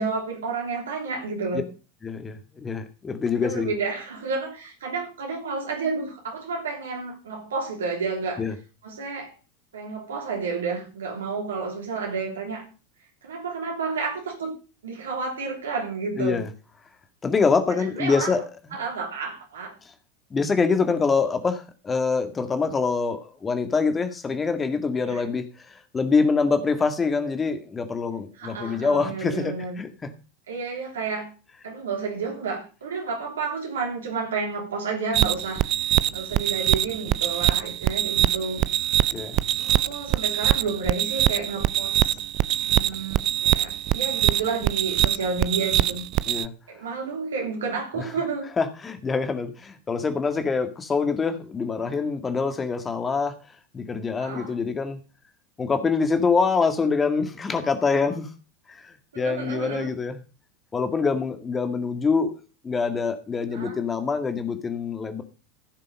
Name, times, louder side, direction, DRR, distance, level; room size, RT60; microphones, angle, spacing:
voice 1, 0.0-1.7 3.4-8.4 8.8-9.3 9.7-12.7 13.2-14.6 14.8-16.4 17.7-18.3 18.7-19.7 25.0-25.2 28.4-29.8 30.5-31.3 31.6-35.6 36.1-38.6 39.5-42.1 42.6-46.0 46.7-48.5 51.8-52.1 54.2-54.5 59.1-59.9 63.5-63.8, right 4 dB, 70° right, 3.1 m, -31 dB
voice 2, 2.0-3.7 8.4-8.5 16.2-16.5 17.2-18.8 20.3-25.7 25.9-30.1 39.1-39.4 46.3-46.5 47.9-48.1 48.6-53.3 53.7-55.0 55.6-58.3 58.7-60.2 60.7-62.3 62.6-65.2, left 4 dB, 20° left, 2.0 m, -25 dB
sound 1, 35.1-46.5, right 14 dB, 45° right, 0.5 m, -23 dB
15.5 x 6.7 x 5.3 m
figure-of-eight pair, 80°, 0 cm